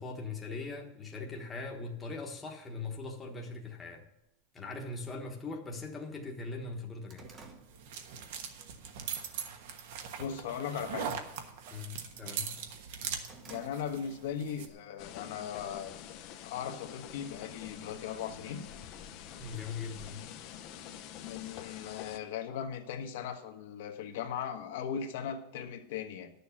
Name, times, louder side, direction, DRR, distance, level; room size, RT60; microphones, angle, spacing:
voice 1, 0.0-4.1 4.5-7.3 11.7-12.6 19.4-20.3, left 3 dB, 10° left, 0 dB, 1.2 m, -41 dB
sound 1, 4.2-4.3 5.2-5.3 5.8-5.9 6.2-8.6 9.0-9.3 9.8-10.3 10.5-10.8 11.1-12.4 12.8-14.3 14.6-14.7 15.6-16.5, right 4 dB, 20° right, 1.1 m, -56 dB
sound 2, 7.2-14.7, right 7 dB, 55° right, 1.2 m, -41 dB
voice 2, 10.2-11.1 13.4-16.1 16.4-18.6 21.2-26.3, left 8 dB, 60° left, 5 dB, 1.3 m, -38 dB
sound 3, 15.0-22.2, left 10 dB, 35° left, 0.7 m, -47 dB
11.0 x 7.0 x 5.8 m, 0.88 s
supercardioid pair, 175°, 0 cm